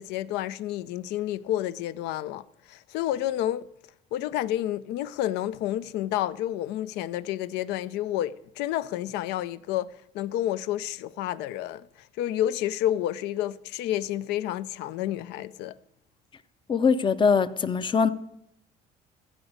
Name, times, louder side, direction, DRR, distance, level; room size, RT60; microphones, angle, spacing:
voice 1, 0.0-3.7 4.1-15.8, left 13 dB, 90° left, 0.5 m, -30 dB
voice 2, 16.7-18.1, left 5 dB, 30° left, 0.5 m, -22 dB
15.0 x 5.1 x 6.4 m
cardioid pair, 110°, 17 cm